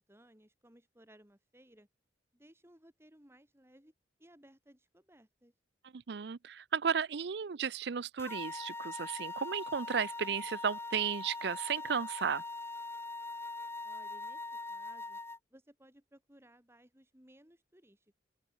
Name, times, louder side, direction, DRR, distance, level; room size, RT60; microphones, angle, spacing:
voice 1, 0.0-1.9 2.3-3.9 4.2-5.5 13.8-14.4 14.7-15.2 15.5-18.2, right 1 dB, 15° right, 3.5 m, -61 dB
voice 2, 5.9-12.4, right 7 dB, 65° right, 0.5 m, -34 dB
sound 1, 8.2-15.4, left 3 dB, 15° left, 1.0 m, -42 dB
open air
head